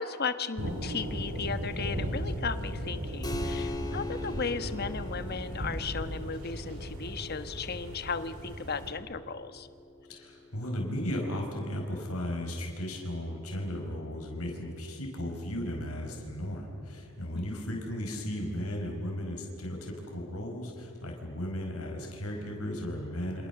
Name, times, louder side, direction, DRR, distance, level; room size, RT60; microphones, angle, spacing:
voice 1, 0.0-9.7 17.3-17.6, left 5 dB, 45° left, 11 dB, 1.2 m, -36 dB
sound 1, 0.6-8.9, equal, 80° right, 4.9 m, -36 dB
Keyboard (musical), 3.2-13.4, left 2 dB, 15° left, 1.7 m, -44 dB
voice 2, 10.1-23.5, equal, 80° left, 1 dB, 5.0 m, -35 dB
28.5 x 27.0 x 7.0 m, 2.8 s
head